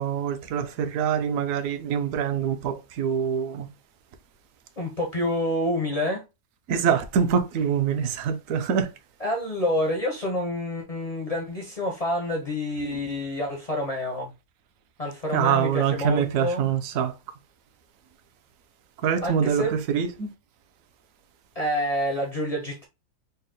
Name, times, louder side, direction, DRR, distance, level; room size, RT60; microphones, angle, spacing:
voice 1, 0.0-3.7 6.7-8.9 15.3-17.1 19.0-20.3, right 7 dB, 65° right, 0.9 m, -25 dB
voice 2, 4.8-6.2 9.2-14.3 15.0-16.7 19.2-19.8 21.6-22.9, left 1 dB, 45° left, 0.4 m, -28 dB
4.1 x 2.1 x 3.7 m
omnidirectional pair, 1.7 m